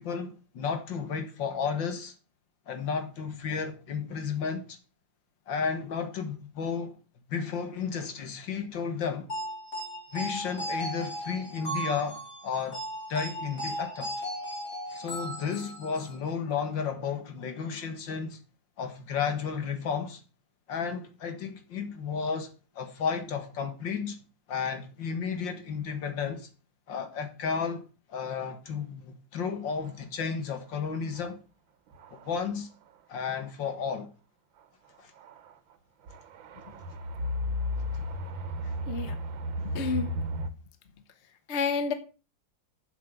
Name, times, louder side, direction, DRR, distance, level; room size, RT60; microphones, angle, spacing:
voice 1, 0.0-2.1 2.7-4.8 5.5-7.0 7.3-9.3 10.1-12.8 13.1-14.1 14.9-18.4 18.8-20.2 20.7-22.5 22.8-24.2 24.5-26.5 26.9-31.4 32.1-32.7 33.1-34.1 35.0-35.1 37.9-38.1 38.6-38.8, left 6 dB, 75° left, 2.2 m, -33 dB
sound 1, 9.3-16.2, right 1 dB, 55° left, 4.5 m, -36 dB
sound 2, 31.2-31.3 31.9-32.3 33.3-33.4 35.2-35.5 36.1-40.5, left 1 dB, 90° right, 1.8 m, -34 dB
voice 2, 39.6-40.3 41.5-41.9, left 5 dB, 40° left, 1.4 m, -30 dB
7.6 x 7.6 x 6.6 m
omnidirectional pair, 2.0 m